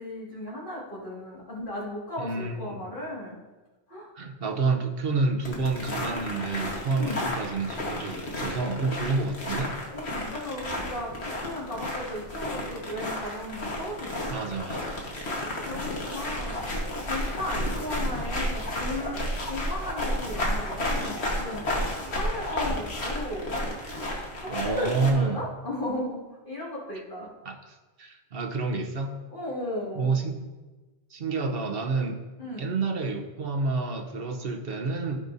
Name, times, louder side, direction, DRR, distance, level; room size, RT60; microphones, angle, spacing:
voice 1, 0.0-3.4 3.9-4.1 6.9-7.3 9.9-14.3 15.3-19.2 19.5-21.7 22.1-23.5 24.4-27.3 29.3-30.1 32.4-32.7, left 1 dB, 50° left, -6 dB, 2.4 m, -35 dB
voice 2, 2.2-2.7 4.1-9.7 14.3-15.0 24.5-25.4 27.4-29.3 29.9-30.4 31.1-32.2 32.6-35.2, right 4 dB, 60° right, 3 dB, 1.2 m, -29 dB
sound 1, 5.4-25.1, left 1 dB, 80° left, 1.7 m, -32 dB
15.5 x 5.2 x 2.7 m, 1.2 s
omnidirectional pair, 1.1 m